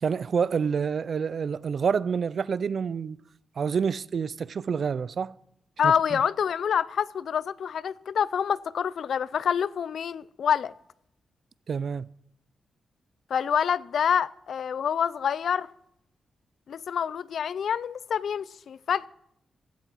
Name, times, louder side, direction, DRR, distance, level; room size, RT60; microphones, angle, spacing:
voice 1, 0.0-3.2 3.6-5.3 5.8-6.2 11.7-12.1, right 6 dB, 60° right, 0.4 m, -28 dB
voice 2, 5.8-10.7 13.3-15.7 16.7-19.1, left 8 dB, 75° left, 0.4 m, -27 dB
16.0 x 13.5 x 4.6 m
cardioid pair, 95°, 0 cm